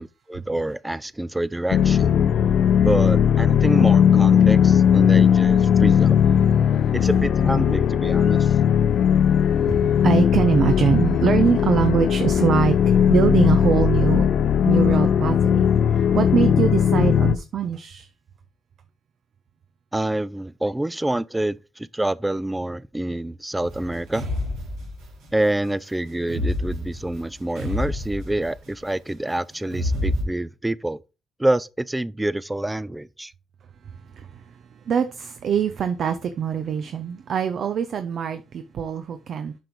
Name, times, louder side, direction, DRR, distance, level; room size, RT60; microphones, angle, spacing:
voice 1, 0.0-2.2 2.8-6.2 6.9-8.6 19.9-24.3 25.3-31.0 31.4-33.3, right 1 dB, 10° right, 0.5 m, -27 dB
sound 1, 1.7-17.4, left 8 dB, 70° left, 0.6 m, -18 dB
voice 2, 6.6-6.9 8.9-14.3 14.6-18.1 33.8-39.5, right 7 dB, 60° right, 0.7 m, -24 dB
sound 2, 23.6-25.3 26.2-28.8 29.7-30.2, left 1 dB, 90° right, 3.1 m, -28 dB
7.7 x 5.3 x 4.6 m
cardioid pair, 90°, 0 cm